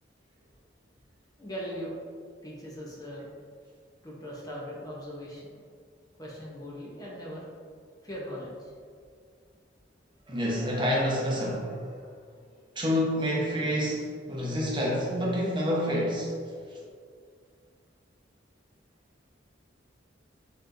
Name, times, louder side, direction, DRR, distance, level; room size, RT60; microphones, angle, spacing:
voice 1, 1.4-2.0 2.4-3.3 4.0-5.5 6.2-7.4 8.0-8.7, equal, 20° left, -5 dB, 0.7 m, -39 dB
voice 2, 10.3-11.9 12.8-16.3 16.7-16.8, equal, 25° right, -4 dB, 0.8 m, -28 dB
6.7 x 3.0 x 2.5 m, 2.1 s
head